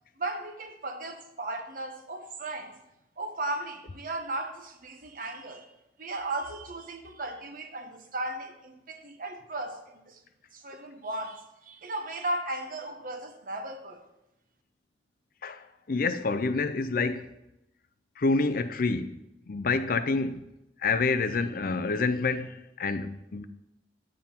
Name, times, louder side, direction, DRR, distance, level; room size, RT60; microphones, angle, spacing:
voice 1, 0.2-2.7 3.2-5.7 6.0-10.2 10.5-14.0, right 2 dB, 50° right, 1.1 m, -36 dB
voice 2, 15.4-17.3 18.2-19.2 19.5-20.4 20.8-23.5, left 3 dB, 55° left, 0.5 m, -28 dB
11.0 x 7.7 x 4.4 m
head